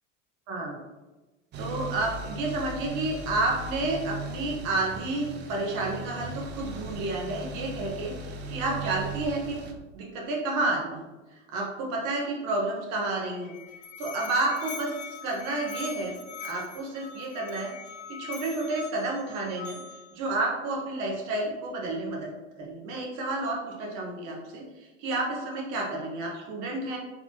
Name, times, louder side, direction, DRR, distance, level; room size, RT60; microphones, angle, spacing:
voice 1, 0.5-0.8 1.6-9.6 9.9-11.0 11.5-13.5 14.0-14.9 15.2-17.7 18.1-19.8 20.1-22.3 22.6-27.0, right 2 dB, 50° right, -1 dB, 1.4 m, -30 dB
sound 1, 1.5-9.7, right 2 dB, 30° right, 0.6 m, -38 dB
Musical instrument, 13.2-20.2, left 5 dB, 20° left, 0.6 m, -42 dB
4.2 x 4.1 x 2.9 m, 1.1 s
figure-of-eight pair, 80°, 39 cm